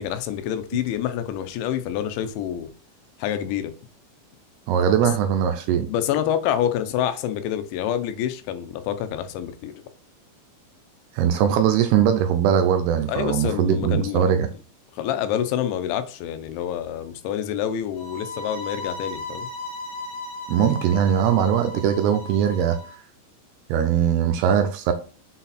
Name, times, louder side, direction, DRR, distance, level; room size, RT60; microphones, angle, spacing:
voice 1, 0.0-2.7 3.2-3.7 5.0-5.1 5.9-9.7 13.1-14.4 15.0-19.5, left 10 dB, 90° left, 3.1 m, -27 dB
voice 2, 4.7-5.9 11.1-14.5 20.5-22.8 23.7-24.9, right 8 dB, 80° right, 2.4 m, -20 dB
sound 1, 18.0-22.9, left 2 dB, 65° left, 1.7 m, -36 dB
6.8 x 4.1 x 4.1 m
omnidirectional pair, 5.1 m